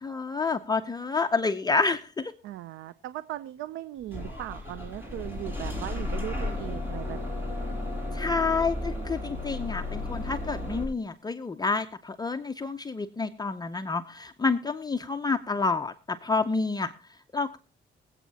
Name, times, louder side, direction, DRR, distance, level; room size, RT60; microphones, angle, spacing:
voice 1, 0.0-2.3 8.1-16.9 17.3-17.6, left 4 dB, 20° left, 8 dB, 0.6 m, -29 dB
voice 2, 2.4-7.6, right 14 dB, 85° right, 15 dB, 0.6 m, -38 dB
Bus / Engine starting, 4.1-10.8, left 2 dB, 10° right, 6.1 m, -33 dB
24.5 x 8.3 x 2.8 m, 0.34 s
cardioid pair, 90°, 20 cm